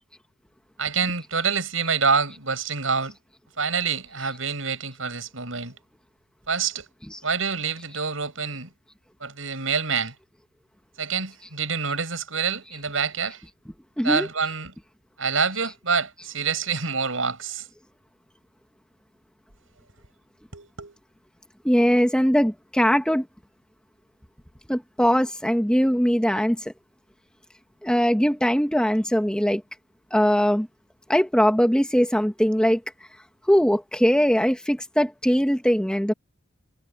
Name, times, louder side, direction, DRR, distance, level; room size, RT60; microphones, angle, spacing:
voice 1, 0.8-3.1 3.6-5.7 6.5-6.8 7.2-8.7 9.2-10.1 11.0-13.4 14.0-14.7 15.2-17.6 20.5-21.0, right 5 dB, 80° right, 6.6 m, -26 dB
voice 2, 14.0-14.3 21.6-23.2 24.7-26.7 27.8-29.6 30.1-30.7 31.1-32.8 33.5-36.1, equal, 5° left, 1.5 m, -21 dB
head